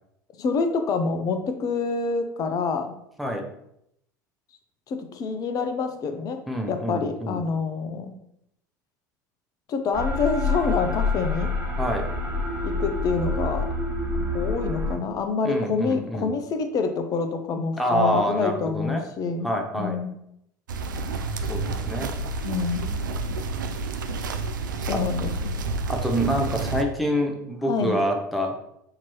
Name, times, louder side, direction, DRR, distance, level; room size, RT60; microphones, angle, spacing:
voice 1, 0.4-2.9 4.9-6.4 6.7-8.1 9.7-11.5 12.6-13.7 14.3-19.5 19.7-20.1 22.4-22.9 24.9-25.5 27.7-28.0, left 4 dB, 35° left, 7 dB, 0.6 m, -27 dB
voice 2, 6.5-7.5 11.8-12.1 15.4-16.3 17.8-19.0 19.4-20.0 21.5-22.1 24.9-25.0 25.9-28.5, equal, ahead, 3 dB, 0.7 m, -26 dB
sound 1, 9.9-15.0, left 2 dB, 20° right, 1.3 m, -27 dB
sound 2, 20.7-26.8, right 3 dB, 75° right, 0.4 m, -29 dB
5.9 x 2.8 x 3.0 m, 0.76 s
figure-of-eight pair, 70°, 11 cm